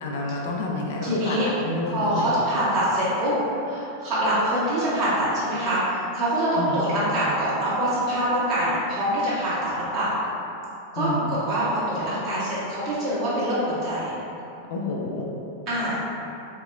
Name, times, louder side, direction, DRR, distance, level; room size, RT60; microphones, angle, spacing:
voice 1, 0.0-1.4 1.6-2.3 6.6-6.9 11.0-11.3 14.7-15.3, left 2 dB, 55° left, -1 dB, 0.3 m, -29 dB
voice 2, 1.0-1.5 1.9-3.3 3.6-10.1 10.9-14.1 15.7-16.0, right 1 dB, 40° right, -11 dB, 1.4 m, -25 dB
3.6 x 2.8 x 2.2 m, 2.8 s
figure-of-eight pair, 90°, 0 cm